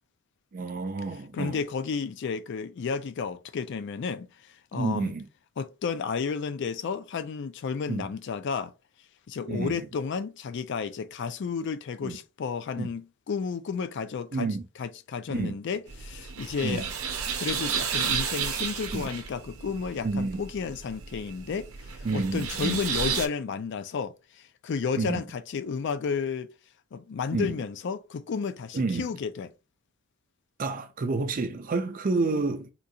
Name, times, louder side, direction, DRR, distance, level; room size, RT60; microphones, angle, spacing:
voice 1, 0.5-1.6 4.7-5.3 7.9-8.1 9.5-9.9 12.0-12.2 12.8-12.9 14.3-14.7 15.3-15.6 16.6-16.9 18.9-19.1 20.0-20.4 22.0-22.8 24.9-25.2 27.3-27.6 28.7-29.1 30.6-32.7, right 3 dB, 40° right, 0.4 m, -29 dB
voice 2, 1.3-5.1 5.6-8.7 9.3-14.5 14.8-16.9 17.4-26.5 26.9-29.5, left 5 dB, 55° left, 0.4 m, -32 dB
sound 1, 15.9-23.3, right 7 dB, 90° right, 0.7 m, -32 dB
3.7 x 2.3 x 2.7 m
head